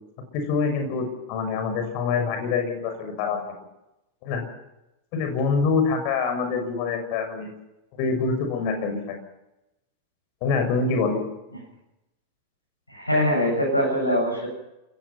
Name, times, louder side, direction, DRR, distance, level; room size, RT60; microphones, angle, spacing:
voice 1, 0.3-3.4 4.2-4.4 5.1-7.5 8.0-9.2 10.4-11.2, left 4 dB, 45° left, 6 dB, 6.4 m, -25 dB
voice 2, 12.9-14.5, equal, 85° left, -1 dB, 7.9 m, -22 dB
27.5 x 16.5 x 5.9 m, 0.92 s
figure-of-eight pair, 90°, 0 cm